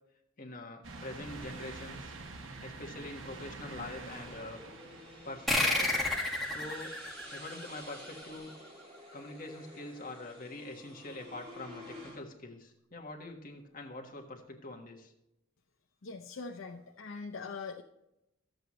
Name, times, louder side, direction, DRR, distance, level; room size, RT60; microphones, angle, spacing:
voice 1, 0.4-2.1 2.6-4.6 5.2-6.0 6.5-7.0 7.3-8.5 9.1-15.1, left 2 dB, 45° left, 1 dB, 1.4 m, -44 dB
sound 1, 0.8-6.4 6.9-7.0 8.3-8.4, right 3 dB, 75° right, 1.0 m, -46 dB
sound 2, 2.1-12.2, equal, 30° right, 2.6 m, -51 dB
sound 3, 5.5-8.5, left 2 dB, ahead, 1.6 m, -31 dB
voice 2, 16.0-17.8, left 4 dB, 80° left, 1 dB, 0.6 m, -42 dB
12.5 x 7.9 x 3.1 m, 0.87 s
head